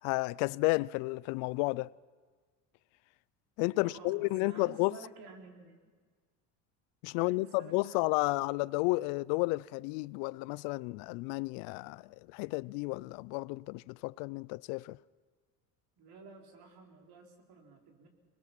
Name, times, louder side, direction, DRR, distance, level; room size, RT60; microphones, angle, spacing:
voice 1, 0.0-1.9 3.6-5.0 7.0-15.0, left 23 dB, 70° left, 0.5 m, -32 dB
voice 2, 3.8-5.8 7.1-8.4 16.0-18.1, right 3 dB, 55° right, 4.0 m, -52 dB
23.5 x 20.0 x 5.9 m
supercardioid pair, 95°, 44 cm